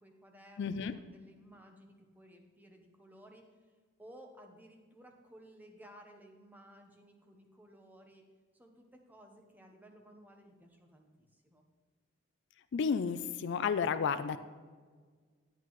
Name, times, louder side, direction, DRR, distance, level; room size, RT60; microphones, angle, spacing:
voice 1, 0.0-3.5 4.0-8.2 8.5-11.6, equal, 10° right, 3 dB, 0.9 m, -57 dB
voice 2, 0.6-0.9 12.7-14.4, left 6 dB, 60° left, 12 dB, 0.4 m, -32 dB
10.5 x 9.0 x 3.1 m, 1.5 s
head